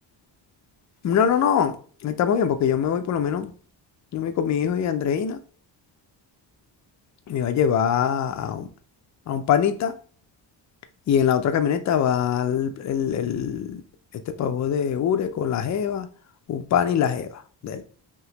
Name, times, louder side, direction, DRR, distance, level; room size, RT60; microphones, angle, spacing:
voice 1, 1.0-1.7 2.0-3.5 4.1-5.4 7.3-8.7 9.3-9.9 11.1-13.8 14.3-16.1 16.5-17.8, left 8 dB, 40° left, 0.4 m, -23 dB
3.5 x 2.8 x 2.8 m
cardioid pair, 135°, 44 cm